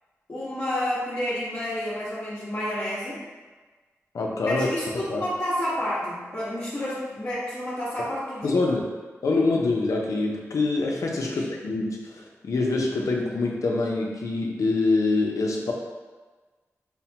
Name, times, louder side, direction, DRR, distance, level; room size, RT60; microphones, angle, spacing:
voice 1, 0.3-3.2 4.4-8.6 11.2-11.4, left 1 dB, 50° left, -13 dB, 1.2 m, -30 dB
voice 2, 4.1-4.7 5.1-5.2 8.4-8.9 9.2-15.7, left 3 dB, 90° left, 0 dB, 0.5 m, -25 dB
5.6 x 2.1 x 2.8 m, 1.3 s
wide cardioid pair, 70°, 5 cm